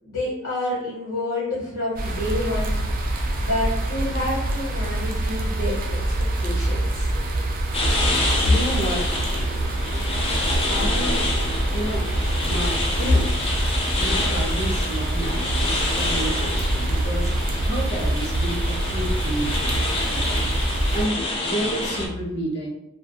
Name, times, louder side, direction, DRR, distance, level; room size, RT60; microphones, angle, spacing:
voice 1, 0.0-2.8 3.4-5.8 6.4-7.1, left 1 dB, 80° left, -6 dB, 1.0 m, -28 dB
sound 1, 2.0-21.1, right 1 dB, 40° right, 0.4 m, -25 dB
sound 2, 7.7-22.1, left 2 dB, 25° left, 0.4 m, -27 dB
voice 2, 8.4-9.0 10.7-11.3 11.7-12.0 12.4-13.3 14.0-22.7, left 1 dB, 55° left, -4 dB, 0.8 m, -28 dB
2.4 x 2.2 x 2.7 m, 0.89 s
head